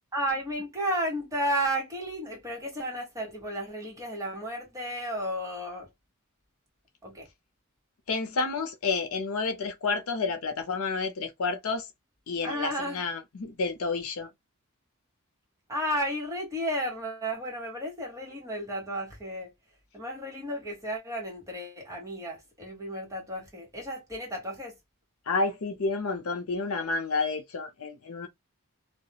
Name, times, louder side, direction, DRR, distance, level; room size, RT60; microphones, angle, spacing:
voice 1, 0.1-5.9 7.0-7.3 12.4-13.0 15.7-19.5 19.9-24.8, equal, 15° right, 1.0 m, -33 dB
voice 2, 8.1-11.9 12.3-14.3 25.3-28.3, left 4 dB, 70° left, 0.6 m, -30 dB
2.3 x 2.1 x 2.8 m
head